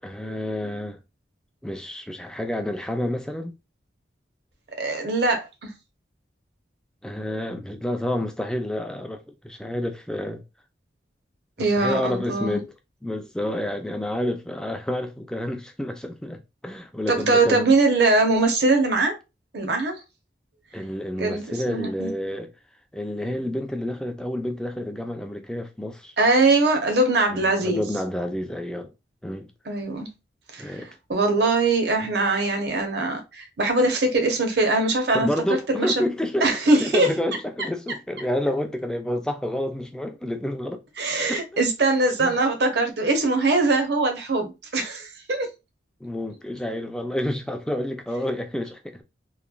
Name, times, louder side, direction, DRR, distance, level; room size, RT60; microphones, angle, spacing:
voice 1, 0.0-1.0 1.6-3.5 7.0-10.4 11.6-12.7 13.0-17.7 20.7-22.5 22.9-26.1 27.3-28.9 29.2-29.5 30.6-30.9 32.0-32.1 35.1-36.5 36.8-40.8 41.1-41.4 42.2-42.4 46.0-49.0, left 1 dB, 5° left, 0.3 m, -29 dB
voice 2, 4.8-5.5 11.6-12.6 17.1-19.2 19.5-20.0 21.2-22.1 26.2-27.8 29.7-30.1 30.5-30.8 31.1-35.3 35.7-35.9 36.4-37.1 41.0-45.5, right 2 dB, 65° right, 0.7 m, -22 dB
3.1 x 2.2 x 2.2 m
head